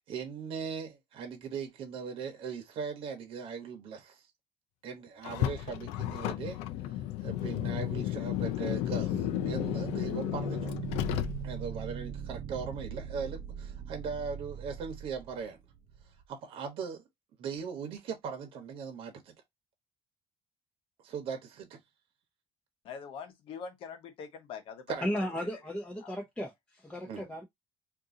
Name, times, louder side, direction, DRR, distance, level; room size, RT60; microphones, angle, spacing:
voice 1, 0.1-4.3 4.8-6.6 7.2-10.8 11.4-15.6 16.3-17.0 17.4-19.3 21.0-21.8 24.9-25.0 27.1-27.2, right 6 dB, 65° right, 1.0 m, -39 dB
Car, 5.2-11.8, left 13 dB, 90° left, 0.4 m, -33 dB
sound 1, 9.1-16.2, right 7 dB, 45° right, 0.5 m, -41 dB
voice 2, 22.8-25.0 25.5-25.6 26.0-26.1, left 6 dB, 65° left, 0.9 m, -43 dB
voice 3, 25.0-27.4, equal, 10° left, 0.8 m, -35 dB
2.6 x 2.6 x 3.6 m
cardioid pair, 120°, 10 cm